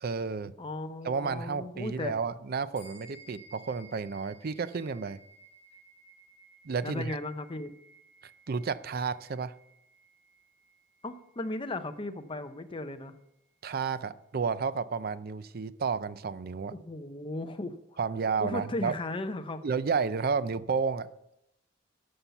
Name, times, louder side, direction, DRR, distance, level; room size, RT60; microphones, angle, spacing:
voice 1, 0.0-0.5 1.0-5.2 6.6-7.2 8.5-9.5 13.6-16.7 18.0-18.9 19.6-21.1, right 5 dB, 55° right, 15 dB, 0.5 m, -31 dB
voice 2, 0.6-2.2 6.8-7.7 11.0-13.1 16.7-18.0 18.4-19.6, left 2 dB, 25° left, 8 dB, 0.7 m, -36 dB
sound 1, 2.7-12.5, right 3 dB, 10° right, 4.4 m, -57 dB
13.0 x 5.6 x 5.6 m, 0.81 s
head